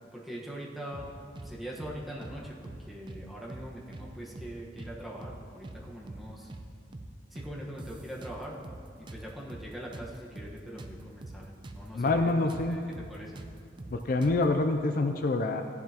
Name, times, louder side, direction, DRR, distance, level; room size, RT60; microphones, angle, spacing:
voice 1, 0.1-1.1 1.4-6.5 7.3-8.5 9.0-13.4, equal, ahead, -4 dB, 1.3 m, -42 dB
sound 1, 0.9-1.5 1.8-1.9 2.2-3.2 3.5-3.7 3.9-4.9 5.2-5.4 5.6-6.7 6.9-7.1 7.4-8.8 9.1-11.8 12.1-12.2 12.5-14.5, right 2 dB, 25° right, 0.6 m, -44 dB
voice 2, 12.0-12.8 13.9-15.6, left 2 dB, 50° left, 6 dB, 0.4 m, -26 dB
14.5 x 10.5 x 2.9 m, 2.4 s
head